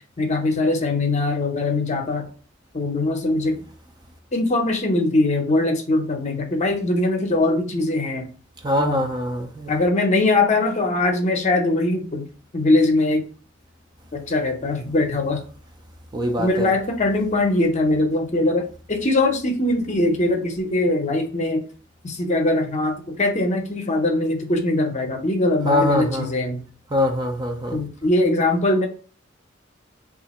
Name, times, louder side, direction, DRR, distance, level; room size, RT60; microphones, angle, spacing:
voice 1, 0.2-2.3 2.7-3.5 4.3-8.3 8.8-9.1 9.7-12.3 12.5-13.2 14.1-15.4 16.4-21.6 22.0-26.6 27.7-28.9, left 2 dB, 40° left, 0.7 m, -21 dB
voice 2, 8.6-9.7 16.1-16.7 25.7-26.3 26.9-27.8, left 1 dB, 20° right, 0.5 m, -23 dB
3.2 x 2.5 x 4.1 m
head